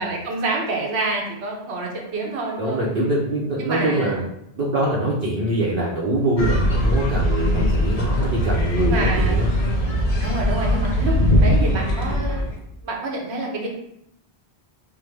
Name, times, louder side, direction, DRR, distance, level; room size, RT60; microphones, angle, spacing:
voice 1, 0.0-2.8 3.6-4.1 7.4-7.8 8.8-9.4 10.2-12.6 12.8-13.7, right 2 dB, 80° right, 0 dB, 1.1 m, -27 dB
voice 2, 2.6-4.2 4.6-9.7, right 1 dB, 60° right, -5 dB, 0.9 m, -23 dB
sound 1, 6.4-12.6, equal, 45° left, 0.6 m, -21 dB
5.7 x 2.1 x 3.3 m, 0.76 s
omnidirectional pair, 1.1 m